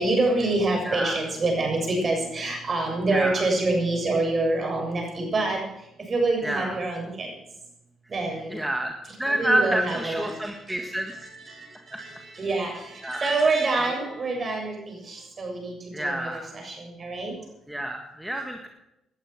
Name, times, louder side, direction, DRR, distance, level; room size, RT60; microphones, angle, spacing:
voice 1, 0.0-5.6 6.1-7.3 8.1-8.6 9.0-17.3, right 2 dB, 40° right, 2 dB, 7.2 m, -27 dB
voice 2, 0.9-1.2 3.1-3.4 6.4-6.8 8.5-11.1 11.9-12.0 13.0-13.3 15.9-16.5 17.7-18.7, right 1 dB, 5° right, 3 dB, 1.7 m, -28 dB
18.5 x 11.5 x 6.0 m, 0.87 s
cardioid pair, 90°, 0 cm